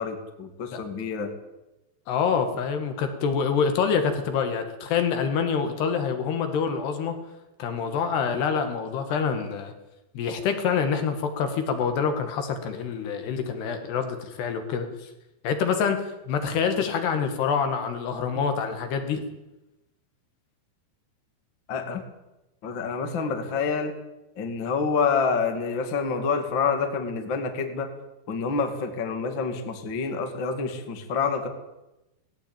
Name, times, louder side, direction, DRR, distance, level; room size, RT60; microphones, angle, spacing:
voice 1, 0.0-1.3 21.7-22.0 22.6-23.9 24.4-27.9 28.3-31.5, left 5 dB, 35° left, 6 dB, 2.2 m, -27 dB
voice 2, 2.1-7.2 7.6-9.7 10.2-15.1 15.4-16.0 16.3-19.3, left 6 dB, 70° left, 7 dB, 3.7 m, -26 dB
18.5 x 17.5 x 8.8 m, 0.96 s
omnidirectional pair, 5.2 m